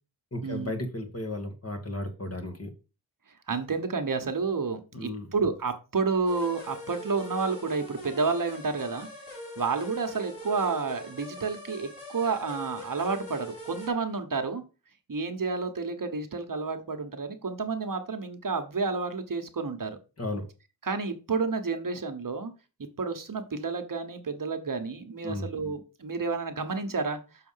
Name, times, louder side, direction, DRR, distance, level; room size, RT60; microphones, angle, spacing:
voice 1, 0.3-2.7 4.9-5.3 20.2-20.4 25.2-25.5, left 2 dB, 35° left, 5 dB, 1.8 m, -34 dB
voice 2, 3.5-9.1 9.6-14.6 15.1-20.0 20.8-22.5 23.0-27.2, right 4 dB, 50° right, 7 dB, 1.1 m, -30 dB
sound 1, 6.3-13.9, left 1 dB, 80° left, 4.0 m, -42 dB
6.5 x 4.2 x 5.6 m, 0.32 s
wide cardioid pair, 65°, 41 cm